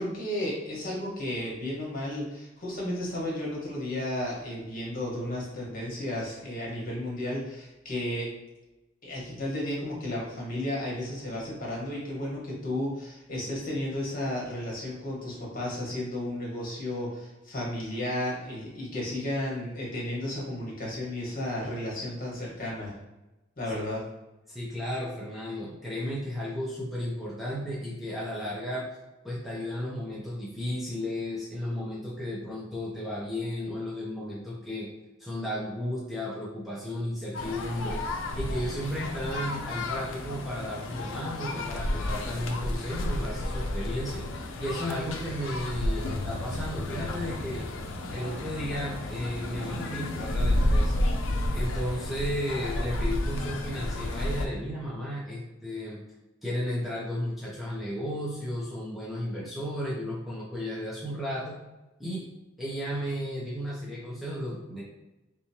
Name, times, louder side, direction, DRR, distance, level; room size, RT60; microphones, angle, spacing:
voice 1, 0.0-8.3 9.0-22.9 23.6-24.0, left 1 dB, 45° left, -4 dB, 1.3 m, -33 dB
voice 2, 24.5-28.9 29.2-34.9 35.2-38.0 38.3-44.2 44.6-47.7 48.1-51.1 51.5-56.0 56.4-61.6 62.0-62.3 62.6-64.8, equal, ahead, -6 dB, 0.6 m, -34 dB
sound 1, 37.3-54.5, left 1 dB, 80° left, 0.5 m, -31 dB
3.5 x 3.0 x 2.8 m, 1.0 s
head